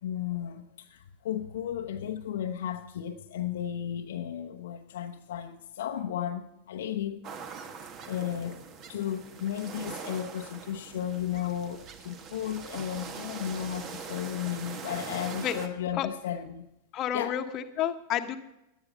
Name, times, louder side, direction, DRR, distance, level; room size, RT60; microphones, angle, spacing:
voice 1, 0.0-7.2 8.1-8.6 8.9-16.6 17.1-17.4, left 10 dB, 60° left, 0.9 m, -34 dB
sound 1, 7.2-15.7, right 6 dB, 35° right, 1.6 m, -42 dB
voice 2, 15.2-15.5 16.0-16.1 16.9-18.4, left 10 dB, 35° left, 1.2 m, -30 dB
17.5 x 11.0 x 5.3 m
figure-of-eight pair, 90°, 0 cm